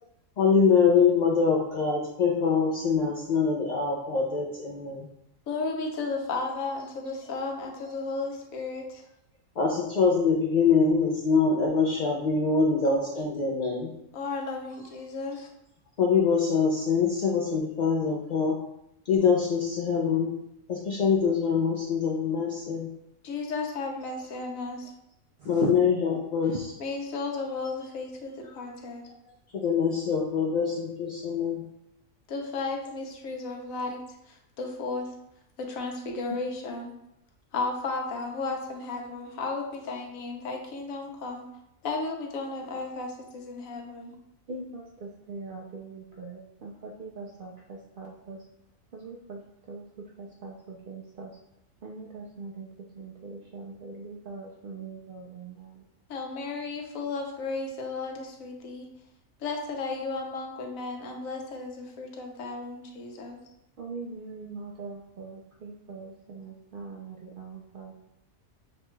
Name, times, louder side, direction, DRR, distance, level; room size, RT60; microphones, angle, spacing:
voice 1, 0.4-5.1 9.6-13.9 16.0-18.6 19.1-20.4 20.7-22.9 25.5-26.5 29.5-31.6, left 5 dB, 65° left, -2 dB, 0.4 m, -24 dB
voice 2, 5.5-9.0 14.1-15.5 23.2-24.9 26.8-29.0 32.3-35.1 35.6-36.9 37.5-41.4 41.8-44.1 56.1-58.9 59.4-63.4, left 3 dB, 80° left, 2 dB, 1.1 m, -34 dB
voice 3, 25.4-25.7 26.5-26.6 36.3-36.4 44.5-48.4 48.9-51.4 51.8-55.9 63.8-68.0, right 4 dB, 70° right, -1 dB, 0.5 m, -40 dB
6.4 x 2.2 x 3.0 m, 0.82 s
omnidirectional pair, 1.4 m